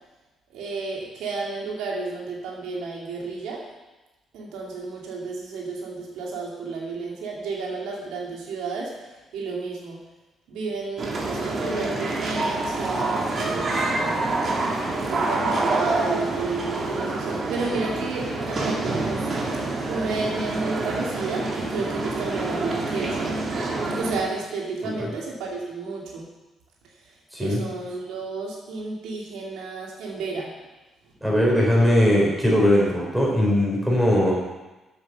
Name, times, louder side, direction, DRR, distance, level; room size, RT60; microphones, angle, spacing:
voice 1, 0.5-3.6 4.3-10.0 10.5-14.3 14.9-19.3 19.9-23.4 24.0-26.3 27.0-30.5, right 3 dB, 90° right, -2 dB, 2.2 m, -32 dB
sound 1, 11.0-24.2, right 2 dB, 45° right, 2.2 m, -27 dB
voice 2, 31.2-34.3, left 1 dB, 5° right, -3 dB, 4.3 m, -20 dB
7.8 x 7.8 x 6.8 m, 1.1 s
cardioid pair, 90°, 0 cm